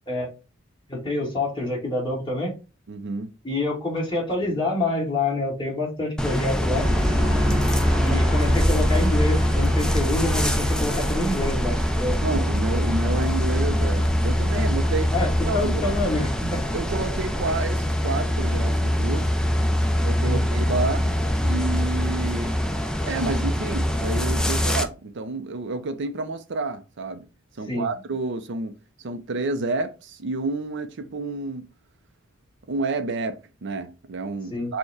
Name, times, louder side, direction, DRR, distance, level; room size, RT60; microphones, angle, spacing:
voice 1, 0.9-2.6 3.4-6.9 8.0-12.2 14.5-14.6 15.1-16.6 20.2-20.4 27.7-27.9 34.5-34.7, left 2 dB, 25° left, 1.9 m, -27 dB
voice 2, 2.9-3.3 7.2-7.7 12.2-15.1 15.4-15.8 16.7-19.3 20.0-21.1 21.4-22.6 23.1-27.3 27.6-31.7 32.7-34.8, right 3 dB, 60° right, 0.5 m, -30 dB
sound 1, 6.2-24.8, equal, 5° left, 0.4 m, -23 dB
sound 2, 6.7-17.5, equal, 15° right, 0.8 m, -30 dB
4.4 x 2.2 x 4.7 m
head